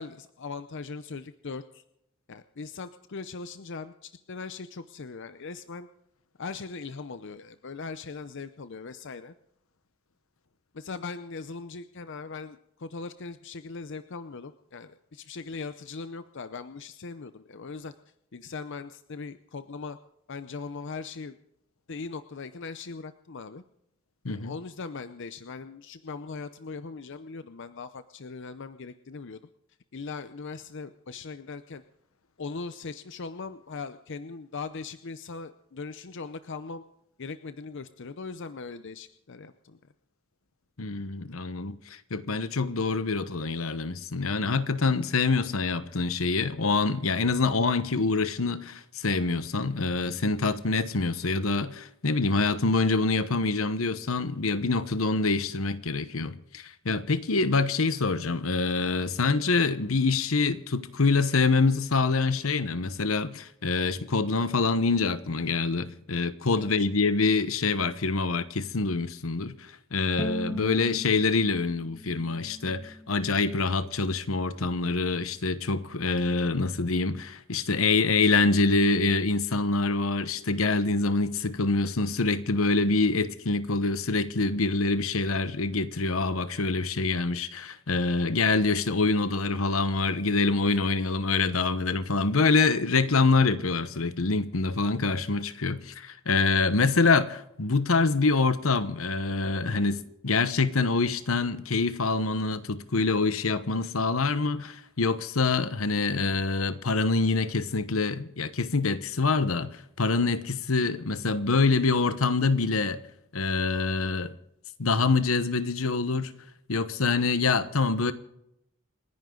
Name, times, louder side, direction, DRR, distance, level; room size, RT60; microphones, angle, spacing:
voice 1, 0.0-1.8 2.3-5.9 6.4-9.3 10.7-17.9 18.3-20.0 20.3-21.4 21.9-23.6 24.3-29.4 29.9-31.8 32.4-36.8 37.2-39.9 66.5-66.7, left 4 dB, 60° left, 0.7 m, -39 dB
voice 2, 40.8-113.0 113.3-114.4 114.8-116.3 116.7-118.1, left 3 dB, 80° left, 1.1 m, -25 dB
Bowed string instrument, 70.2-73.4, left 1 dB, 5° left, 0.8 m, -38 dB
29.0 x 11.0 x 3.9 m
head